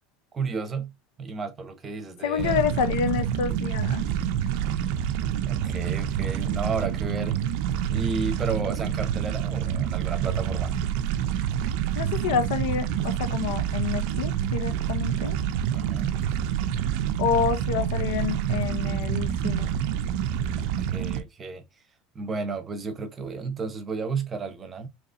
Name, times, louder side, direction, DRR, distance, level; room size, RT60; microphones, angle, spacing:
voice 1, 0.3-0.9 1.2-2.7 5.5-7.4 7.8-10.7 15.7-16.2 20.6-21.8 22.1-24.9, right 4 dB, 20° right, 0.8 m, -33 dB
voice 2, 2.2-4.0 12.0-15.4 17.2-19.7, left 7 dB, 85° left, 0.7 m, -28 dB
sound 1, 2.4-21.2, right 9 dB, 65° right, 0.4 m, -27 dB
4.1 x 2.9 x 2.5 m
supercardioid pair, 140°, 0 cm